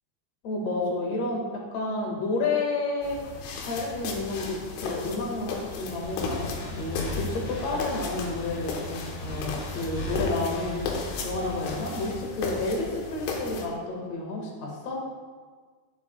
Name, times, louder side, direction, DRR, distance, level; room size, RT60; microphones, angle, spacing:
voice 1, 0.4-3.2 3.6-10.8 11.2-15.0, left 2 dB, 50° left, -1 dB, 2.2 m, -30 dB
sound 1, 3.0-13.6, left 4 dB, 85° left, 3.6 m, -35 dB
sound 2, 6.0-12.1, left 1 dB, 70° left, 4.0 m, -37 dB
17.5 x 7.2 x 2.3 m, 1.5 s
omnidirectional pair, 5.3 m